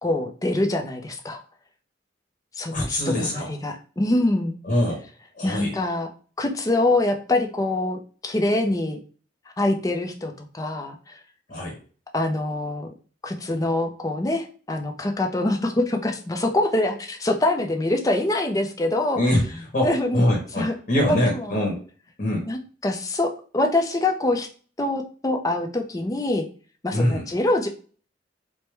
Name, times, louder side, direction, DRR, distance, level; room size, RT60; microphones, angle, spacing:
voice 1, 0.0-1.4 2.6-4.6 5.4-6.1 6.4-9.0 9.6-11.2 12.1-12.9 13.2-19.2 19.8-20.2 20.6-20.8 21.1-21.6 22.5-24.5 24.8-26.5 26.8-27.7, left 2 dB, 20° left, 4 dB, 0.4 m, -24 dB
voice 2, 2.7-3.5 4.6-5.0 5.3-5.8 11.5-11.8 19.2-21.8 22.2-22.5 26.9-27.3, left 1 dB, 50° left, -1 dB, 0.9 m, -24 dB
4.5 x 2.1 x 3.2 m, 0.41 s
head